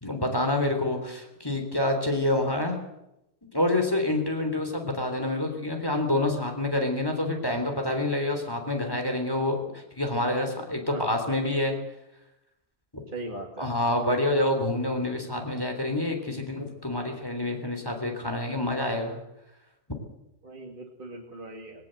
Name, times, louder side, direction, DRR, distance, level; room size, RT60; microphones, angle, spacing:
voice 1, 0.0-2.8 3.5-11.7 12.9-13.0 13.6-19.2, left 1 dB, 15° left, 4 dB, 3.7 m, -27 dB
voice 2, 13.1-13.7 20.4-21.9, right 2 dB, 35° right, 0 dB, 2.4 m, -39 dB
21.0 x 17.5 x 7.9 m, 0.87 s
omnidirectional pair, 1.6 m